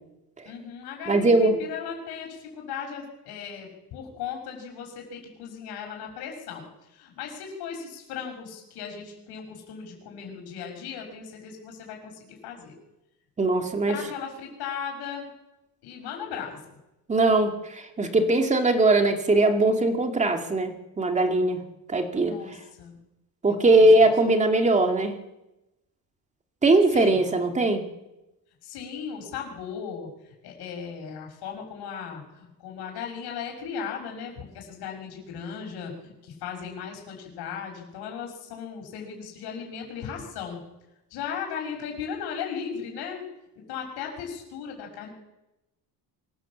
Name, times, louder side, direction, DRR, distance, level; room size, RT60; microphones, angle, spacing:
voice 1, 0.4-12.7 13.9-15.3 15.8-16.8 22.2-23.0 23.5-24.1 26.9-27.2 28.6-40.6 41.1-43.3 43.7-45.1, left 7 dB, 80° left, 2 dB, 6.2 m, -37 dB
voice 2, 1.1-1.5 13.4-14.0 17.1-21.6 21.9-22.3 23.4-25.2 26.6-27.8, right 2 dB, 20° right, 5 dB, 2.4 m, -20 dB
24.0 x 16.5 x 7.5 m, 0.98 s
cardioid pair, 160°, 38 cm